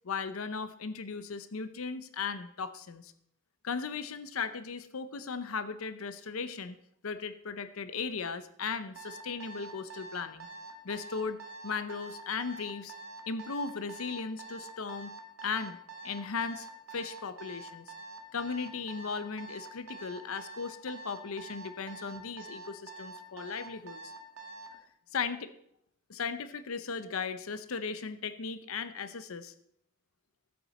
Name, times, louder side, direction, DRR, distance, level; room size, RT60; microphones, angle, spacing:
voice 1, 0.0-3.1 3.6-6.8 7.0-10.5 10.8-12.9 13.3-15.1 15.4-15.8 16.0-17.8 18.3-24.1 25.1-25.5 26.1-29.5, left 5 dB, 85° left, 12 dB, 0.7 m, -37 dB
Alarm, 9.0-24.8, right 3 dB, 85° right, 1.5 m, -46 dB
12.5 x 8.6 x 4.3 m, 0.71 s
head